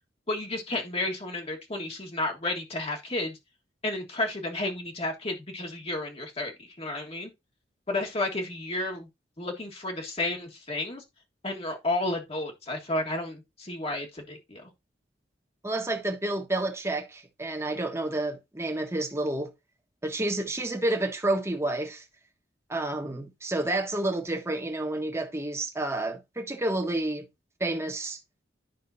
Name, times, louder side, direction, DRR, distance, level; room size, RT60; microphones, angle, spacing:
voice 1, 0.3-3.4 3.8-6.5 6.8-7.3 7.9-9.1 9.4-11.0 11.4-14.7, left 2 dB, 35° left, 1.6 m, -32 dB
voice 2, 15.6-19.5 20.0-22.0 22.7-27.3 27.6-28.2, right 2 dB, 15° right, 1.4 m, -30 dB
10.5 x 5.6 x 2.7 m
head